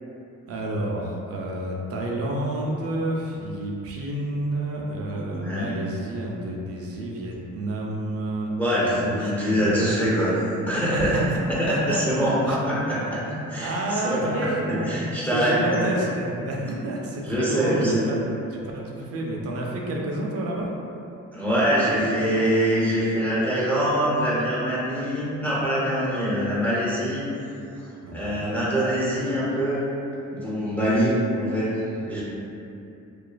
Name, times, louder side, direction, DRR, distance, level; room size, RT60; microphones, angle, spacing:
voice 1, 0.5-10.1 10.9-11.4 11.7-12.6 13.3-18.2 18.5-20.8 28.0-28.5, right 1 dB, 50° right, -1 dB, 0.5 m, -30 dB
voice 2, 5.3-5.7 8.6-10.4 10.7-11.2 11.5-13.2 13.5-15.9 17.2-18.1 21.3-27.3 28.1-29.8 30.3-32.2, equal, 5° left, -9 dB, 0.5 m, -24 dB
2.4 x 2.3 x 2.2 m, 2.7 s
cardioid pair, 90°, 30 cm